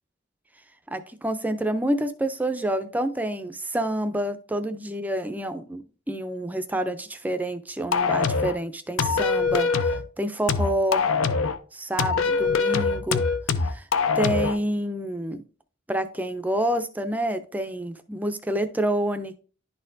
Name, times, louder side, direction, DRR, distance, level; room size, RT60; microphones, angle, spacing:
voice 1, 0.9-11.1 11.7-13.2 13.6-13.8 14.2-15.4 15.9-19.4, right 1 dB, 10° right, 9 dB, 0.4 m, -28 dB
sound 1, 7.9-8.6 9.0-10.0 10.5-11.6 12.0-14.6, left 4 dB, 80° left, 0.5 m, -23 dB
11.0 x 4.2 x 2.6 m, 0.38 s
head